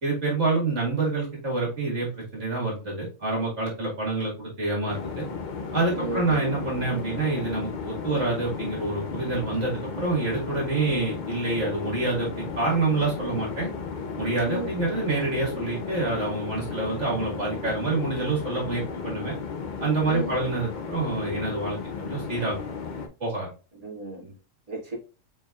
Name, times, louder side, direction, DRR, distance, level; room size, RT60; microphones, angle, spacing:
voice 1, 0.0-5.2 5.7-13.7 14.2-19.3 19.8-22.6 23.2-23.5 24.2-24.3, right 3 dB, 60° right, -3 dB, 2.2 m, -27 dB
sound 1, 4.9-23.1, left 5 dB, 45° left, 0.7 m, -34 dB
voice 2, 5.9-6.5 14.4-14.8 20.0-20.4 23.8-24.3 24.7-25.0, right 2 dB, 30° right, -4 dB, 2.1 m, -34 dB
4.7 x 4.4 x 2.3 m, 0.34 s
omnidirectional pair, 1.3 m